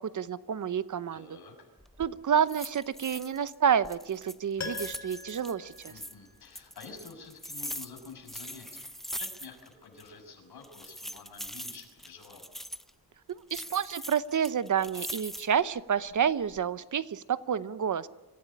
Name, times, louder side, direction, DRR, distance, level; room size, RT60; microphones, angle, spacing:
voice 1, 0.1-1.3 2.0-5.9 13.5-18.1, right 8 dB, 50° right, 16 dB, 0.8 m, -29 dB
voice 2, 1.1-1.7 5.9-8.8 9.1-12.5, left 4 dB, 70° left, 3 dB, 6.4 m, -49 dB
sound 1, 1.8-2.1 2.5-3.5 3.8-6.1 6.5-9.7 10.0-10.1 10.6-12.9 13.5-15.6 16.1-16.6, equal, ahead, 0.7 m, -41 dB
Piano, 4.6-6.7 7.0-7.1, left 4 dB, 45° left, 3.3 m, -42 dB
25.5 x 16.0 x 10.0 m, 1.1 s
wide cardioid pair, 160°, 40 cm